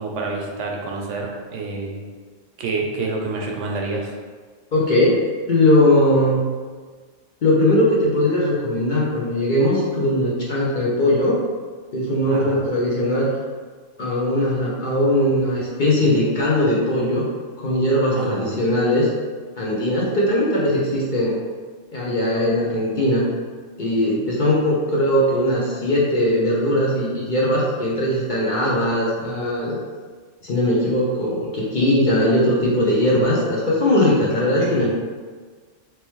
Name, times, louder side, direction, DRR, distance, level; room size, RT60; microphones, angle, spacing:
voice 1, 0.0-2.0 2.6-4.1 12.3-12.7 18.1-18.6 34.6-34.8, right 3 dB, 75° right, 0 dB, 0.9 m, -28 dB
voice 2, 4.7-5.2 5.5-6.4 7.4-11.4 11.9-13.3 14.0-17.3 17.6-19.1 19.6-21.3 21.9-23.3 23.8-29.8 30.4-34.9, left 1 dB, 50° left, -6 dB, 0.6 m, -19 dB
3.0 x 3.0 x 3.0 m, 1.5 s
omnidirectional pair, 1.3 m